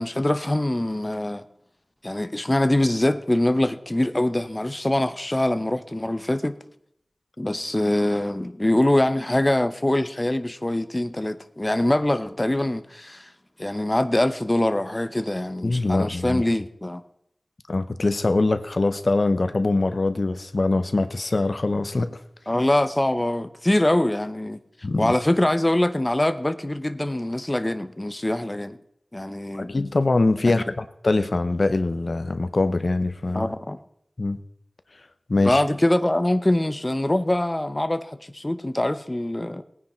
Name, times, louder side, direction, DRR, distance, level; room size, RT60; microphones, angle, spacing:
voice 1, 0.0-1.4 2.0-6.5 7.4-13.3 13.6-17.0 22.5-24.6 25.0-28.8 29.1-29.8 30.5-30.6 33.3-33.8 35.4-39.6, left 1 dB, 25° left, 0.8 m, -23 dB
voice 2, 15.6-16.4 17.7-22.2 24.8-25.2 29.6-33.5 34.2-34.4 35.3-35.6, left 2 dB, 60° left, 0.8 m, -23 dB
18.5 x 9.8 x 4.4 m
wide cardioid pair, 50°, 0 cm